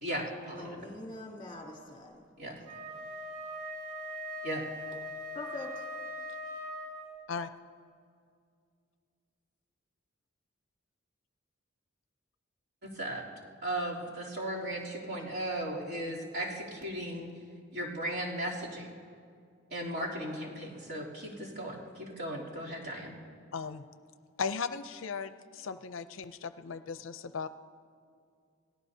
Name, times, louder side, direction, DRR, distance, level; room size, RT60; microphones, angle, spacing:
voice 1, 0.0-0.8 2.4-2.6 4.4-4.6 12.8-13.2 13.6-17.3 17.7-18.9 19.7-23.1, right 1 dB, 55° right, -6 dB, 3.2 m, -36 dB
voice 2, 0.5-2.3 2.6-2.7 5.3-5.8, left 2 dB, 25° left, -1 dB, 2.9 m, -43 dB
Wind instrument woodwind instrument, 2.6-7.2, equal, 90° right, 4.3 m, -41 dB
voice 3, 23.5-23.8 24.4-27.5, left 5 dB, 70° left, 11 dB, 0.5 m, -37 dB
28.0 x 18.0 x 2.8 m, 2.3 s
head